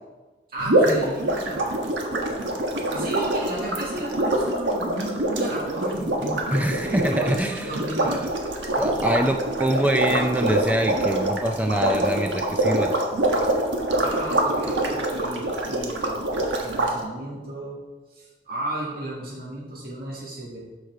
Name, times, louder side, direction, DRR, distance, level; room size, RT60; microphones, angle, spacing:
voice 1, 0.5-1.8 2.9-8.1 10.4-10.6 14.0-17.8 18.1-20.6, right 1 dB, 55° right, -6 dB, 2.2 m, -34 dB
sound 1, 0.6-16.9, right 1 dB, 85° right, 1.4 m, -25 dB
voice 2, 6.5-7.7 8.0-8.3 8.8-13.0, right 1 dB, 10° right, 4 dB, 0.4 m, -24 dB
13.0 x 4.9 x 4.6 m, 1.2 s
head